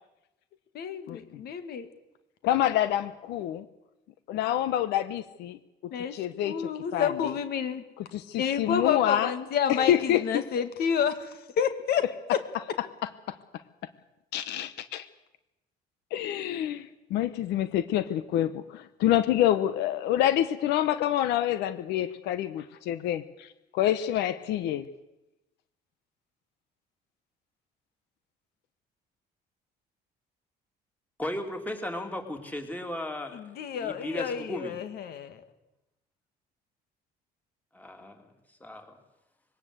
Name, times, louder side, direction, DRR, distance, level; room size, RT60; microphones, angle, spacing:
voice 1, 0.7-1.9 5.9-7.8 8.4-12.0 33.3-35.4, left 8 dB, 70° left, 9 dB, 2.1 m, -29 dB
voice 2, 2.4-3.7 4.3-5.6 6.1-6.5 6.9-7.3 8.1-9.3 9.7-10.4 14.3-15.0 16.1-24.9, left 12 dB, 85° left, 13 dB, 1.1 m, -27 dB
voice 3, 31.2-34.8 37.7-38.3 38.6-39.0, left 1 dB, 10° left, 5 dB, 3.2 m, -36 dB
21.5 x 18.0 x 8.1 m, 0.95 s
cardioid pair, 110°, 17 cm